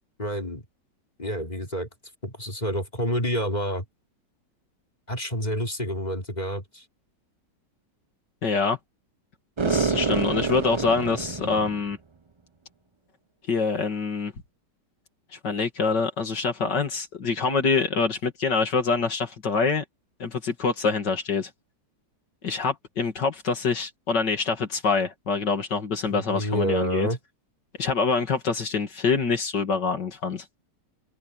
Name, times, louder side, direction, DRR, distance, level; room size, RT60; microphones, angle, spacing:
voice 1, 0.2-0.6 1.2-1.9 2.2-3.8 5.1-6.8 26.1-27.2, equal, 25° left, 3.5 m, -28 dB
voice 2, 8.4-8.8 9.6-12.0 13.5-14.3 15.3-19.8 20.2-21.5 22.4-27.1 27.8-30.4, left 4 dB, 75° left, 2.9 m, -25 dB
sound 1, 9.6-11.9, right 4 dB, 50° right, 0.3 m, -27 dB
open air
omnidirectional pair, 1.9 m